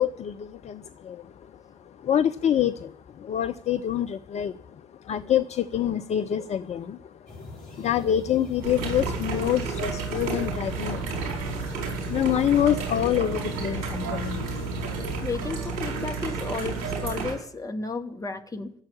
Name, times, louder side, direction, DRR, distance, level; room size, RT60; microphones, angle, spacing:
voice 1, 0.0-4.6 5.0-15.2, left 10 dB, 45° left, 11 dB, 0.6 m, -27 dB
sound 1, 7.3-15.2, left 2 dB, 65° left, 2.6 m, -41 dB
sound 2, 8.6-17.3, right 4 dB, 65° right, 4.7 m, -31 dB
voice 2, 15.2-18.7, left 4 dB, 20° left, 4 dB, 2.1 m, -33 dB
14.0 x 7.6 x 10.0 m, 0.64 s
figure-of-eight pair, 45°, 16 cm